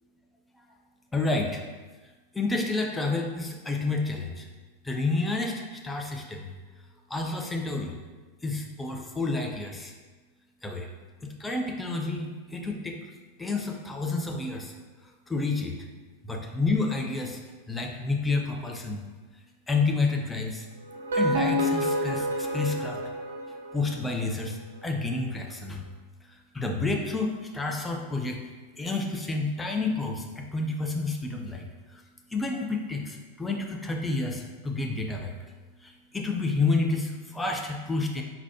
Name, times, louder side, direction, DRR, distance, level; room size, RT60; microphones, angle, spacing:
voice 1, 1.1-1.6 2.3-4.5 4.8-6.5 7.1-7.9 8.4-9.9 10.6-10.9 11.2-13.0 13.4-14.7 15.3-15.8 16.2-17.4 17.7-19.0 19.7-20.6 21.1-23.0 23.7-25.8 26.5-28.4 28.8-31.7 31.9-32.0 32.3-35.3 35.8-38.2, left 3 dB, 10° left, 1 dB, 0.6 m, -29 dB
sound 1, 20.9-24.0, equal, 65° right, 0.6 m, -28 dB
4.7 x 4.0 x 2.8 m, 1.3 s
figure-of-eight pair, 90°, 0 cm